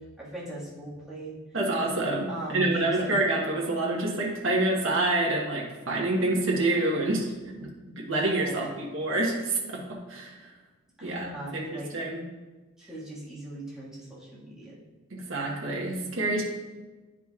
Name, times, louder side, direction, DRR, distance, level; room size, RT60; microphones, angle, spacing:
voice 1, 0.0-1.3 2.3-3.1 8.1-8.7 11.0-11.9 12.8-14.8, right 1 dB, 5° right, -9 dB, 1.8 m, -39 dB
voice 2, 1.5-7.3 7.6-10.5 11.0-12.3 15.1-16.4, right 2 dB, 75° right, -2 dB, 1.1 m, -27 dB
9.9 x 5.0 x 2.4 m, 1.2 s
head